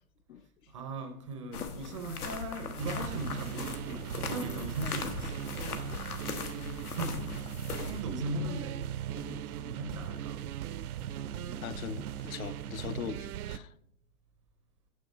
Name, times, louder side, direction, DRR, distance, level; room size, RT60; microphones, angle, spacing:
voice 1, 0.7-5.5 5.8-6.1 6.8-10.5 11.2-11.8, right 1 dB, 25° right, 0.4 m, -39 dB
sound 1, 1.5-8.0, left 6 dB, 90° left, 1.2 m, -40 dB
sound 2, 2.8-13.6, right 11 dB, 80° right, 0.5 m, -39 dB
voice 2, 11.6-13.7, left 9 dB, 70° left, 0.6 m, -40 dB
6.4 x 6.2 x 5.0 m
hypercardioid pair, 145°, 43 cm